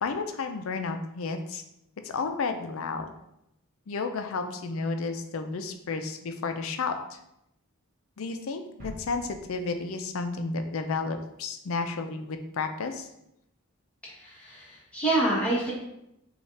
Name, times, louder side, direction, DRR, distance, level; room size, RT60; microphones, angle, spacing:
voice 1, 0.0-1.6 2.0-3.1 3.9-7.2 8.2-13.1, left 4 dB, 70° left, 7 dB, 0.5 m, -32 dB
sound 1, 8.8-10.6 10.9-11.0, equal, 40° right, 1.1 m, -47 dB
voice 2, 14.2-15.7, right 2 dB, 5° left, -7 dB, 1.2 m, -27 dB
5.4 x 2.4 x 3.3 m, 0.82 s
head